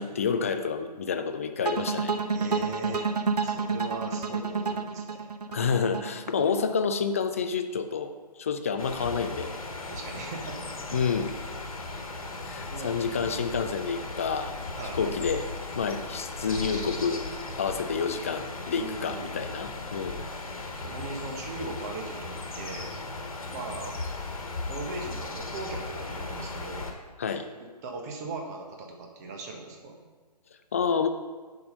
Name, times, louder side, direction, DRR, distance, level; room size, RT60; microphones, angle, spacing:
voice 1, 0.0-2.1 5.5-8.1 8.4-9.5 10.9-11.3 12.4-14.6 14.9-15.5 15.8-17.3 17.6-20.2 27.2-27.5 30.7-31.1, left 6 dB, 20° left, 8 dB, 0.4 m, -29 dB
sound 1, 1.6-6.7, right 4 dB, 70° right, 0.8 m, -29 dB
voice 2, 2.3-3.1 3.4-5.3 9.9-11.0 12.7-13.0 14.7-15.2 16.7-16.8 18.7-19.4 20.8-22.9 23.5-24.0 24.7-26.9 27.3-30.0, right 3 dB, 25° right, 2 dB, 1.2 m, -39 dB
sound 2, 8.8-26.9, left 3 dB, 55° left, 1.5 m, -37 dB
10.5 x 5.4 x 5.4 m, 1.4 s
figure-of-eight pair, 135°, 21 cm